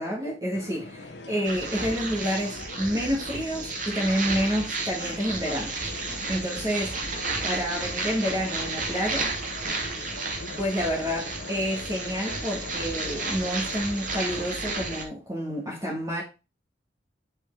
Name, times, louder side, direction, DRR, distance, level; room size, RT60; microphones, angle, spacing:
voice 1, 0.0-5.8 6.3-7.0 7.4-9.3 10.6-16.2, equal, 20° right, 1.6 m, -29 dB
sound 1, 0.5-15.0, left 2 dB, 70° left, 0.9 m, -42 dB
sound 2, 1.4-15.0, right 3 dB, 50° right, 1.5 m, -32 dB
5.4 x 4.7 x 4.5 m
head